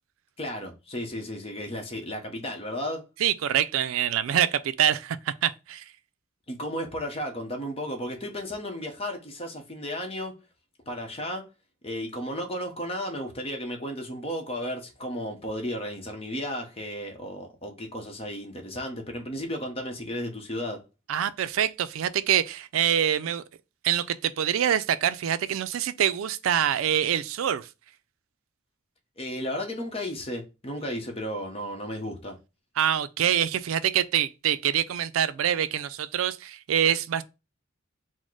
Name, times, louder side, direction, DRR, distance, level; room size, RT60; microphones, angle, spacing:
voice 1, 0.4-3.1 6.5-10.4 10.9-11.5 11.8-20.8 29.2-32.4, equal, 30° left, 0.8 m, -34 dB
voice 2, 3.2-5.8 21.1-23.4 23.8-27.7 32.8-37.2, right 9 dB, 80° right, 0.4 m, -25 dB
4.2 x 2.1 x 4.5 m
head